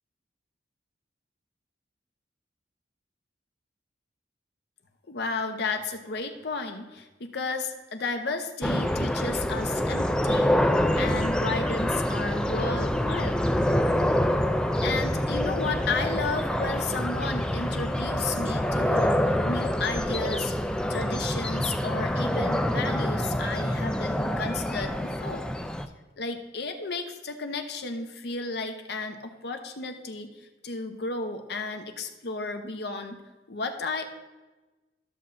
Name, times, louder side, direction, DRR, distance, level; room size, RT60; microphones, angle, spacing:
voice 1, 5.1-10.6 11.0-13.4 14.8-20.5 20.9-25.5 26.2-30.3 30.6-33.2 33.5-34.1, left 3 dB, 60° left, 6 dB, 0.8 m, -33 dB
sound 1, 8.6-25.9, left 1 dB, 5° left, 0.3 m, -26 dB
13.5 x 6.9 x 2.5 m, 1.2 s
head